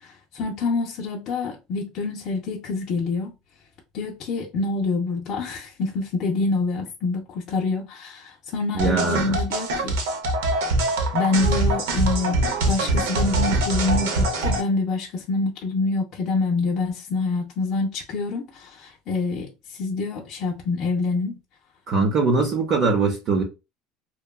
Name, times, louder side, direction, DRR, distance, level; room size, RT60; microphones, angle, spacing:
voice 1, 0.0-3.3 3.9-10.0 11.1-21.4, left 3 dB, 45° left, 0.5 m, -26 dB
voice 2, 8.7-9.4 21.9-23.4, right 4 dB, 40° right, 0.6 m, -21 dB
sound 1, 8.8-14.6, right 2 dB, 90° right, 0.6 m, -23 dB
2.7 x 2.2 x 2.2 m
supercardioid pair, 140°, 0 cm